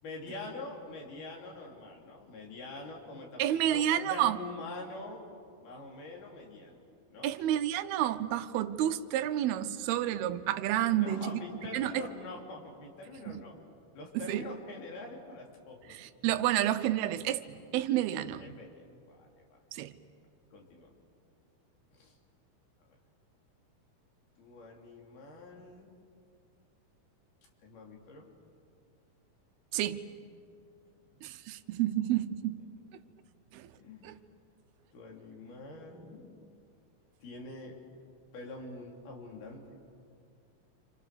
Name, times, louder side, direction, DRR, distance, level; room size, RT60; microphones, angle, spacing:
voice 1, 0.0-5.2 5.6-6.8 7.1-7.4 10.9-13.5 13.9-16.0 18.4-19.6 20.5-20.9 21.9-22.1 24.4-25.9 27.6-28.3 31.1-31.2 33.8-34.1 34.9-36.4 37.2-37.8 38.3-39.8, left 2 dB, 80° left, -1 dB, 5.3 m, -45 dB
voice 2, 3.4-4.4 7.2-11.4 11.7-12.0 13.3-13.4 14.1-14.4 15.9-17.4 17.7-18.4 19.7-20.0 29.7-30.1 31.2-32.6 33.5-33.7 34.0-34.2, right 12 dB, 90° right, 11 dB, 2.8 m, -30 dB
29.5 x 27.0 x 6.8 m, 2.3 s
omnidirectional pair, 4.3 m